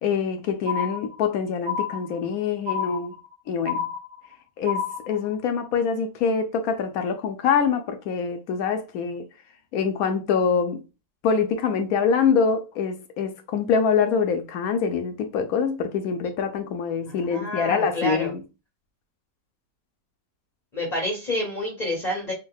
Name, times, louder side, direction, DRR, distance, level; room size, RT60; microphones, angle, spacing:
voice 1, 0.0-3.1 3.5-3.9 4.6-9.3 9.7-10.8 11.2-18.4, left 6 dB, 75° left, 0.8 m, -25 dB
sound 1, 0.7-1.3 1.7-2.3 2.7-3.3 3.7-4.3 4.7-5.3, left 7 dB, 80° right, 1.4 m, -29 dB
voice 2, 17.1-18.3 20.7-22.3, left 1 dB, 40° left, 0.6 m, -29 dB
3.5 x 2.2 x 3.8 m
omnidirectional pair, 2.0 m